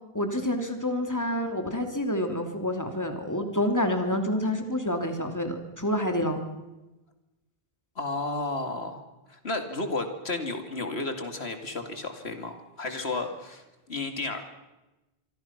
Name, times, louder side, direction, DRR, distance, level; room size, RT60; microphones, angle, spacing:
voice 1, 0.1-6.4, left 1 dB, 15° left, 5 dB, 2.9 m, -28 dB
voice 2, 8.0-9.0 9.3-14.4, left 2 dB, 75° left, 6 dB, 2.8 m, -32 dB
26.0 x 24.5 x 5.9 m, 1.0 s
omnidirectional pair, 1.1 m